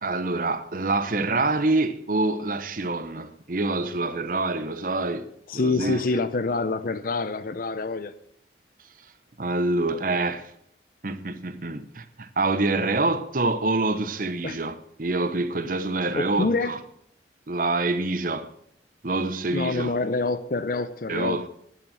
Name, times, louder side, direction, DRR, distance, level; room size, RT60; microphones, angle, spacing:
voice 1, 0.0-5.3 5.5-6.0 9.4-10.5 11.0-16.8 17.5-18.5 19.0-20.0 21.1-21.5, right 2 dB, 45° right, 0.9 m, -26 dB
voice 2, 5.5-8.1 14.4-14.6 16.2-16.7 19.5-21.4, left 3 dB, 50° left, 0.6 m, -26 dB
11.0 x 8.2 x 7.2 m
head